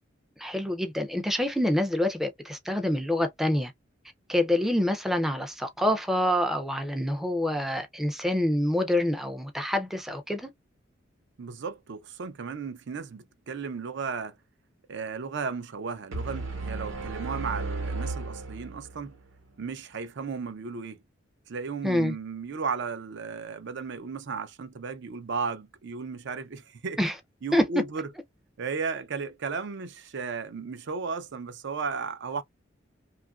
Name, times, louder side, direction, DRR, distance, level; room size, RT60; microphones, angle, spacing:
voice 1, 0.4-3.7 4.3-10.5 21.8-22.1 27.0-27.1 27.5-27.6, left 1 dB, ahead, 0.4 m, -26 dB
voice 2, 11.4-14.4 14.9-19.2 19.6-21.0 21.5-27.0 27.4-28.1 28.6-32.4, right 5 dB, 65° right, 0.5 m, -34 dB
sound 1, 16.1-19.2, right 3 dB, 80° right, 1.0 m, -34 dB
2.9 x 2.4 x 2.3 m
head